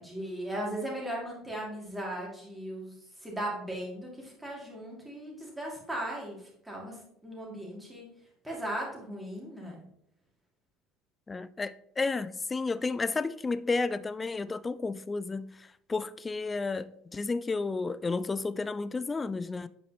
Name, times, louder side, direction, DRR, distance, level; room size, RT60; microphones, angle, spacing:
voice 1, 0.0-3.0 3.2-6.4 6.6-7.0 7.2-8.1 8.4-9.8, right 1 dB, 5° right, 2.6 m, -37 dB
voice 2, 11.3-19.7, left 3 dB, 20° left, 0.4 m, -32 dB
8.5 x 5.0 x 3.0 m
figure-of-eight pair, 65°, 0 cm